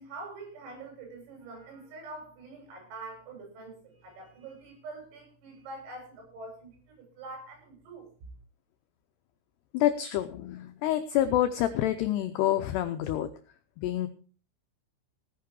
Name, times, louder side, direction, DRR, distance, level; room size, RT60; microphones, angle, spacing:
voice 1, 0.0-8.1, right 3 dB, 85° right, 2 dB, 9.6 m, -45 dB
voice 2, 9.7-13.3 13.8-14.1, left 12 dB, 90° left, 8 dB, 2.3 m, -27 dB
17.0 x 9.6 x 4.7 m, 0.39 s
omnidirectional pair, 5.9 m